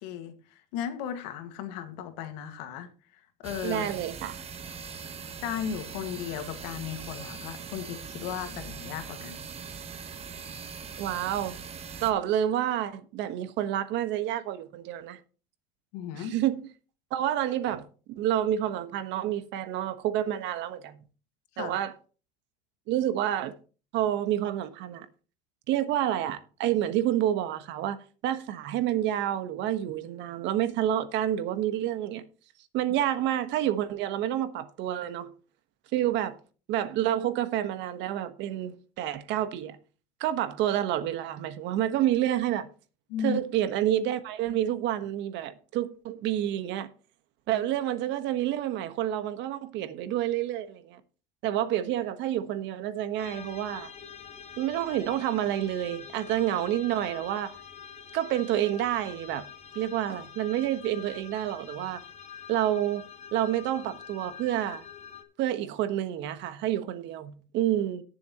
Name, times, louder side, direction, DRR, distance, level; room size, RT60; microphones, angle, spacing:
voice 1, 0.0-2.9 3.4-3.9 5.4-9.4 15.9-16.3 21.6-21.8 43.1-43.4, left 8 dB, 85° left, 1.9 m, -35 dB
sound 1, 3.4-12.1, right 6 dB, 30° right, 1.2 m, -41 dB
voice 2, 3.6-4.4 11.0-11.6 12.0-15.2 16.1-16.7 17.1-21.0 21.6-21.9 22.9-23.5 23.9-25.1 25.7-28.0 28.2-32.2 32.7-35.3 35.9-36.4 36.7-39.8 40.2-42.7 43.2-46.9 47.5-51.0 51.4-53.9 54.6-57.5 58.1-59.5 59.7-62.0 62.5-63.0 63.3-64.8 65.4-68.0, right 12 dB, 60° right, 1.4 m, -29 dB
sound 2, 53.2-65.2, left 7 dB, 30° left, 1.7 m, -46 dB
18.5 x 7.1 x 3.0 m
cardioid pair, 130°, 21 cm